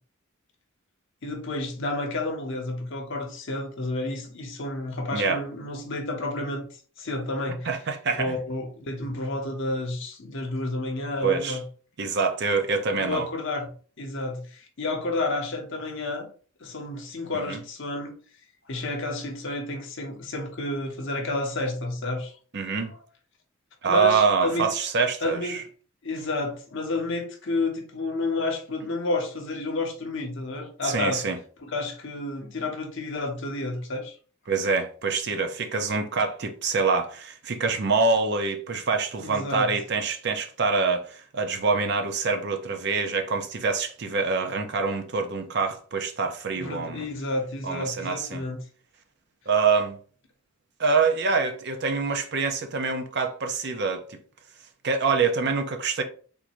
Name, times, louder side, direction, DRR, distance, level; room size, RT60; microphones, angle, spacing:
voice 1, 1.2-6.7 7.0-7.7 8.2-11.6 13.0-13.7 14.0-16.3 16.6-18.1 18.7-22.3 23.9-24.7 25.2-25.7 26.0-31.2 31.6-34.1 39.2-39.7 46.5-48.6, left 2 dB, 60° left, 0.8 m, -30 dB
voice 2, 7.7-8.4 11.2-11.6 12.0-13.3 17.3-17.6 22.5-22.9 23.8-25.6 30.8-31.4 34.5-47.1 47.6-48.4 49.5-50.0 50.8-54.2 54.8-56.0, right 4 dB, 50° right, 0.5 m, -25 dB
3.6 x 2.6 x 3.0 m
head